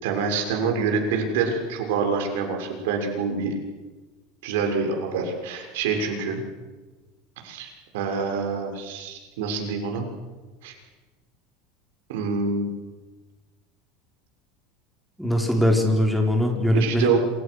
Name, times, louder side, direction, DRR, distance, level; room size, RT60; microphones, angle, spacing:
voice 1, 0.0-3.5 4.4-6.4 7.4-10.0 10.6-10.7 12.1-12.7 16.7-17.2, right 5 dB, 80° right, 3 dB, 6.6 m, -26 dB
voice 2, 15.2-17.2, left 1 dB, ahead, 2 dB, 4.2 m, -21 dB
27.5 x 27.5 x 6.5 m, 1.2 s
supercardioid pair, 160°, 0 cm